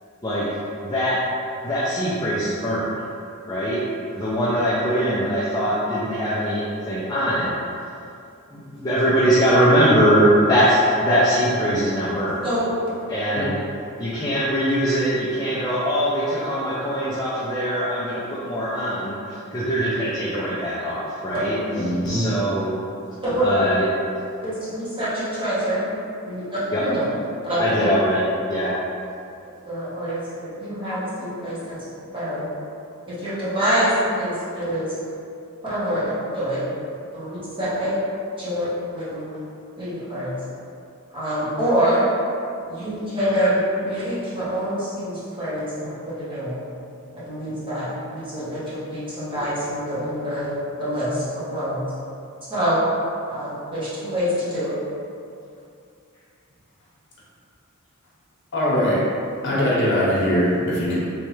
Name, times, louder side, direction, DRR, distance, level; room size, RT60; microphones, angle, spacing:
voice 1, 0.8-1.2 1.6-3.1 3.5-3.8 4.1-7.5 8.5-12.4 13.1-13.6 14.0-21.6 22.0-22.8 23.4-23.9 26.7-26.8 27.6-28.8, equal, 20° left, -8 dB, 0.5 m, -22 dB
voice 2, 21.7-22.2 58.5-59.0 59.4-60.9, equal, 55° left, -7 dB, 0.9 m, -21 dB
voice 3, 24.4-25.9 26.2-27.0 27.4-27.9 29.6-31.8 32.1-32.5 33.1-34.9 35.6-36.6 37.1-37.9 38.4-39.3 39.8-40.4 41.1-42.1 42.7-46.6 47.2-51.8 52.5-52.8 53.3-54.7, equal, 25° right, -11 dB, 1.2 m, -25 dB
3.2 x 3.1 x 3.2 m, 2.5 s
head